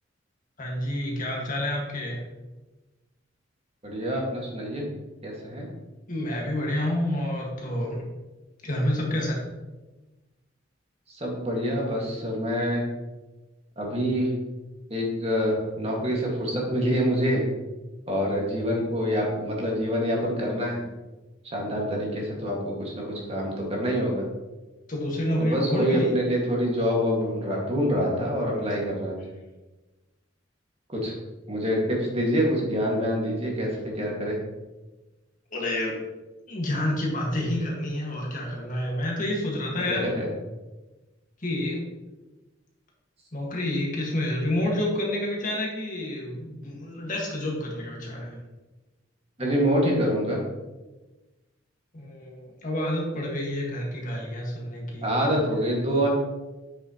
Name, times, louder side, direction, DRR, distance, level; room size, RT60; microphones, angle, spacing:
voice 1, 0.6-2.2 6.1-8.0 8.6-9.4 24.9-26.1 28.5-28.6 35.5-36.0 36.5-40.1 41.4-41.8 43.3-48.4 51.9-55.5, left 1 dB, 45° left, -1 dB, 1.8 m, -29 dB
voice 2, 3.8-4.8 5.2-5.7 11.2-12.8 13.8-14.3 14.9-17.4 18.1-20.8 21.4-24.2 25.4-29.2 30.9-31.1 31.5-34.4 39.9-40.3 49.4-50.4 55.0-56.1, equal, 30° right, -2 dB, 1.9 m, -26 dB
8.2 x 6.4 x 3.0 m, 1.1 s
head